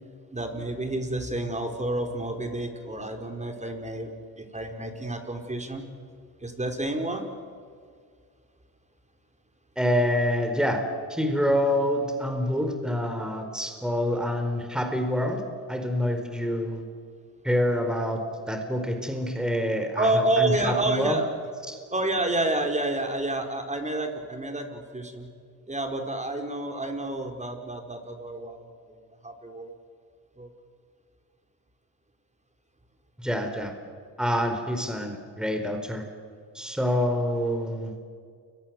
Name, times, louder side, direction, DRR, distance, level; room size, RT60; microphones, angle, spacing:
voice 1, 0.3-4.1 4.4-5.8 6.4-7.3 20.0-21.3 21.9-25.3 25.7-28.6 29.2-29.7 30.4-30.5, right 2 dB, 15° right, 4 dB, 5.0 m, -29 dB
voice 2, 9.8-10.8 11.1-15.4 15.7-16.8 17.4-18.2 18.5-21.2 21.7-21.8 33.2-33.7 34.2-36.0 36.5-37.9, equal, ahead, 5 dB, 4.6 m, -26 dB
29.5 x 23.5 x 7.9 m, 2.1 s
cardioid pair, 80°, 40 cm